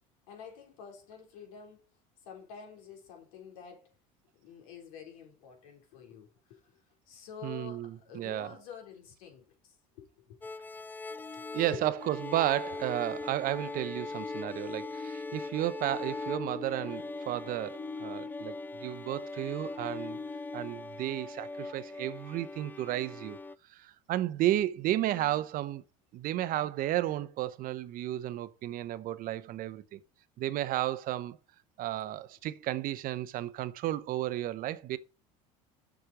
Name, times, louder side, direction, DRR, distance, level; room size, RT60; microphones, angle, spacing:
voice 1, 0.3-1.9 2.2-3.9 4.3-10.4 11.7-11.9, left 7 dB, 80° left, 3.9 m, -49 dB
voice 2, 7.4-8.5 11.5-20.2 20.5-23.4 23.7-25.8 26.1-30.0 30.4-31.4 31.8-35.0, right 14 dB, 55° right, 0.8 m, -33 dB
sound 1, 10.4-23.6, left 3 dB, 10° left, 0.4 m, -41 dB
sound 2, 11.1-12.4 12.7-18.9 19.1-20.7, left 4 dB, 35° left, 1.4 m, -44 dB
7.1 x 6.3 x 4.9 m
supercardioid pair, 90°, 17 cm